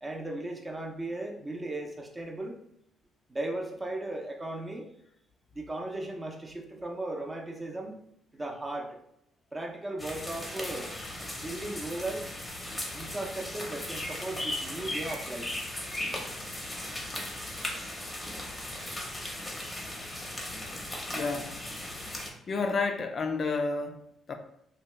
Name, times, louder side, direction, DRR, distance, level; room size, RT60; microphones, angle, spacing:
voice 1, 0.0-2.6 3.3-4.9 5.5-8.0 8.3-9.0 9.5-10.9 11.3-12.3 12.9-15.5, right 2 dB, 20° right, 1 dB, 0.6 m, -36 dB
sound 1, 10.0-22.3, left 1 dB, 15° left, 0.7 m, -37 dB
voice 2, 21.1-21.6 22.5-24.3, left 4 dB, 50° left, 5 dB, 0.3 m, -30 dB
2.7 x 2.2 x 3.2 m, 0.77 s
cardioid pair, 90°, 0 cm